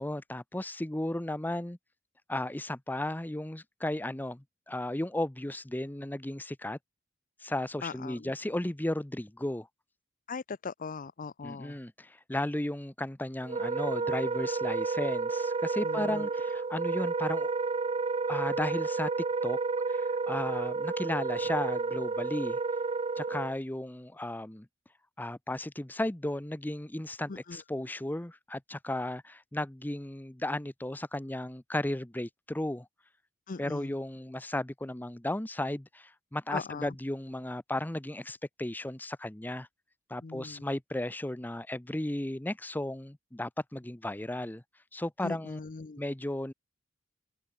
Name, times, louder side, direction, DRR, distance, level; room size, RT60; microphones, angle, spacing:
voice 1, 0.0-1.8 2.3-6.8 7.4-9.7 11.4-17.5 18.3-19.1 19.4-19.6 19.9-22.6 23.2-24.7 25.2-32.9 33.6-39.7 40.1-44.6 44.9-45.6 46.0-46.5, left 1 dB, 10° left, 0.7 m, -35 dB
voice 2, 7.8-8.3 10.3-11.8 15.8-16.3 27.3-27.6 33.5-34.0 36.5-37.0 40.2-40.6 45.2-46.0, left 4 dB, 45° left, 0.6 m, -40 dB
Wind instrument woodwind instrument, 13.4-23.5, right 4 dB, 30° right, 0.5 m, -31 dB
head